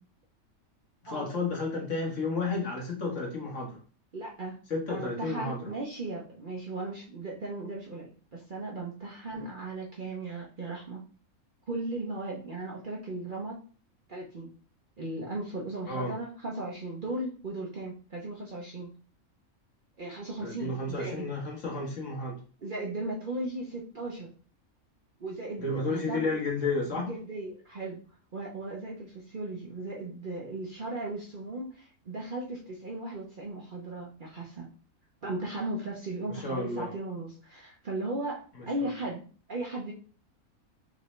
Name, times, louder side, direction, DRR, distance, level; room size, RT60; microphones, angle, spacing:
voice 1, 1.0-3.8 4.7-5.7 15.9-16.2 20.4-22.4 25.6-27.1 36.3-36.9 38.6-38.9, left 3 dB, 60° left, -2 dB, 1.6 m, -32 dB
voice 2, 4.1-4.6 4.9-11.0 11.7-13.6 14.1-14.5 15.0-18.9 20.0-21.3 22.6-24.3 25.2-26.2 27.0-28.0 28.3-34.7 35.2-39.9, right 2 dB, 40° right, -3 dB, 0.8 m, -37 dB
5.0 x 2.7 x 3.2 m, 0.39 s
omnidirectional pair, 1.5 m